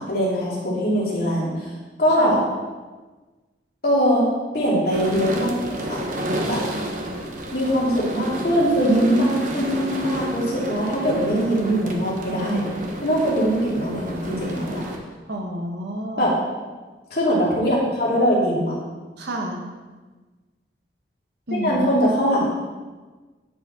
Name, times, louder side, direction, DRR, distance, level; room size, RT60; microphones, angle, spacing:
voice 1, 0.0-1.7 2.0-2.4 3.8-4.2 4.5-6.0 6.5-6.6 7.5-12.6 13.0-14.8 16.2-16.3 17.1-18.8 21.5-22.4, equal, 55° left, -6 dB, 2.4 m, -21 dB
sound 1, 4.9-15.0, right 1 dB, 45° right, 0.9 m, -30 dB
voice 2, 15.3-16.3 19.2-19.6 21.5-21.9, right 1 dB, 70° right, 1 dB, 1.3 m, -29 dB
9.9 x 4.9 x 4.2 m, 1.3 s
head